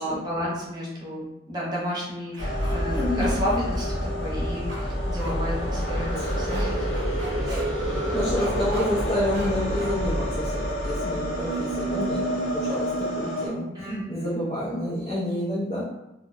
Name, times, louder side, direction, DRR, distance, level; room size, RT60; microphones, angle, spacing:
voice 1, 0.0-6.9 13.7-14.4, equal, 20° right, -6 dB, 0.6 m, -32 dB
sound 1, 2.3-3.9 4.7-4.8 5.2-5.3 6.5-6.6 6.9-7.6 8.4-8.9 9.3-9.5 9.8-9.9, right 2 dB, 70° right, 0.6 m, -39 dB
sound 2, 2.4-13.5, equal, 75° left, 0.8 m, -27 dB
voice 2, 2.9-3.4 6.2-6.3 7.4-7.7 8.1-13.7 14.1-15.9, left 1 dB, 30° left, -8 dB, 0.5 m, -29 dB
2.7 x 2.1 x 2.5 m, 0.89 s
head